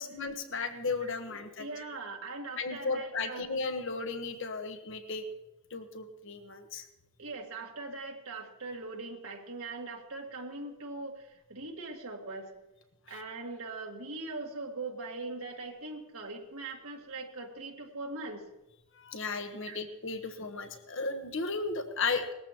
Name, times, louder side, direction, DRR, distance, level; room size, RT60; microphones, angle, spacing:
voice 1, 0.0-1.7 2.6-5.2 5.7-6.8 13.1-13.2 18.9-22.3, left 4 dB, 60° left, 7 dB, 1.3 m, -35 dB
voice 2, 1.3-3.5 7.2-12.5 13.1-18.4 19.6-19.8, right 3 dB, 80° right, 1 dB, 2.0 m, -41 dB
19.5 x 14.0 x 3.0 m, 1.0 s
head